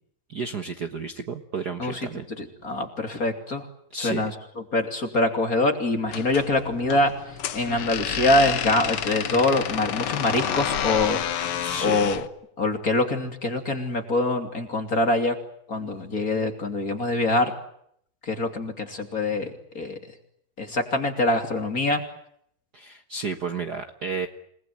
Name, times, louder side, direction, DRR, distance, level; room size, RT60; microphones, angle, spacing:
voice 1, 0.3-2.2 3.9-4.3 11.6-12.0 22.7-24.3, right 4 dB, 70° right, 7 dB, 0.9 m, -32 dB
voice 2, 2.4-3.7 3.9-4.3 4.7-11.5 11.8-12.2 12.6-15.4 15.7-17.5 18.2-20.0 20.6-22.0, left 2 dB, 25° left, 6 dB, 2.9 m, -24 dB
sound 1, 6.1-12.3, left 9 dB, 65° left, 1.4 m, -29 dB
28.5 x 20.0 x 9.6 m, 0.71 s
omnidirectional pair, 4.1 m